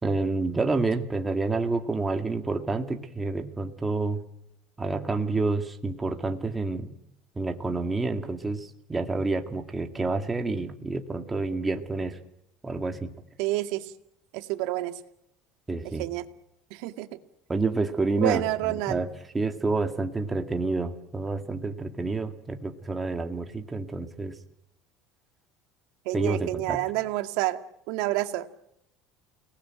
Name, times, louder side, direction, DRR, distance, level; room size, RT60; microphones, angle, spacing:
voice 1, 0.0-4.2 4.8-6.9 7.4-12.2 12.6-13.1 15.7-16.1 17.5-18.4 18.9-19.1 19.3-24.4 26.1-26.8, right 3 dB, 15° right, 6 dB, 2.1 m, -28 dB
voice 2, 13.4-13.9 14.3-15.0 15.8-16.3 16.7-17.2 18.2-19.0 26.1-27.6 27.9-28.5, right 16 dB, 70° right, 9 dB, 2.0 m, -29 dB
29.5 x 19.0 x 9.0 m, 0.78 s
cardioid pair, 150°, 0 cm